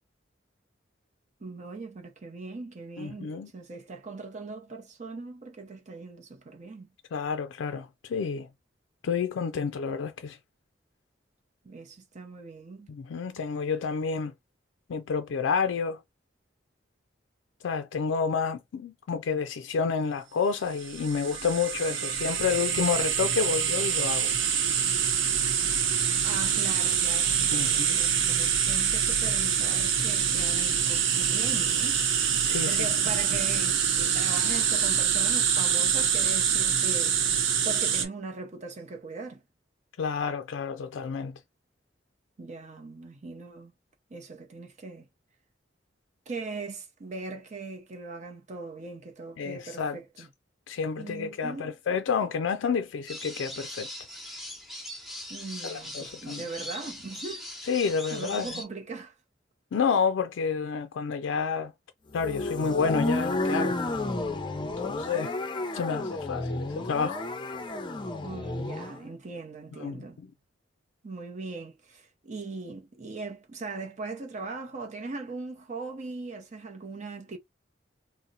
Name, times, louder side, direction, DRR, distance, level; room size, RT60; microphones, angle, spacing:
voice 1, 1.4-6.9 11.6-12.9 26.2-32.0 32.6-37.2 37.6-39.4 42.4-43.7 44.1-45.1 46.3-50.3 51.0-51.7 55.3-57.5 58.1-59.1 68.2-70.2 71.0-77.4, right 3 dB, 40° right, 0.6 m, -40 dB
voice 2, 3.0-3.5 7.1-8.5 9.0-10.4 12.9-14.3 14.9-16.0 17.6-24.3 27.5-28.0 32.4-32.9 40.0-41.4 49.4-50.3 50.7-53.9 55.6-56.4 57.7-58.6 59.7-61.7 62.1-63.8 64.6-65.3 65.7-67.2 69.7-70.3, left 6 dB, 90° left, 0.4 m, -29 dB
sound 1, 20.8-38.1, right 8 dB, 85° right, 0.7 m, -25 dB
sound 2, 53.1-58.6, left 1 dB, ahead, 0.8 m, -40 dB
sound 3, 62.1-69.0, left 2 dB, 25° left, 0.5 m, -31 dB
2.8 x 2.0 x 3.9 m
head